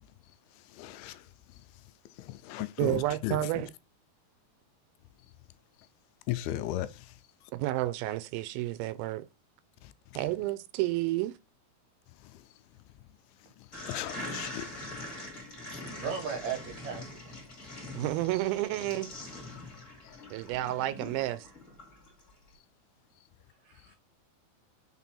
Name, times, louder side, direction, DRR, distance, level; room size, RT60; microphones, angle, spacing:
voice 1, 0.0-3.5 5.2-5.3 6.3-7.5 9.8-10.2 12.1-13.1 13.4-16.0 20.0-20.2 23.8-24.0, left 14 dB, 90° left, 2.5 m, -40 dB
voice 2, 2.8-3.7 7.5-9.3 10.2-11.4 17.9-19.1 20.3-21.5, right 16 dB, 80° right, 2.4 m, -30 dB
sound 1, 13.7-22.3, left 1 dB, 25° left, 2.3 m, -43 dB
voice 3, 15.9-17.4 23.6-24.0, right 6 dB, 65° right, 1.8 m, -37 dB
5.9 x 3.9 x 4.2 m
omnidirectional pair, 4.4 m